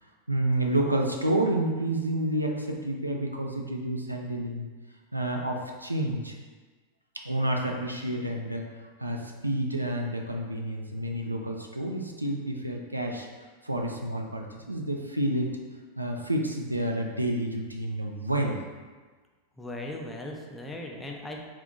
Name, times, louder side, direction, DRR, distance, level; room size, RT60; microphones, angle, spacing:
voice 1, 0.3-4.7 5.1-6.4 7.1-8.6 9.0-13.3 13.6-15.5 16.0-18.7, right 1 dB, 85° right, 1 dB, 0.3 m, -29 dB
voice 2, 19.6-21.4, left 1 dB, 10° left, 0 dB, 0.4 m, -38 dB
2.6 x 2.4 x 3.7 m, 1.4 s
figure-of-eight pair, 90°, 0 cm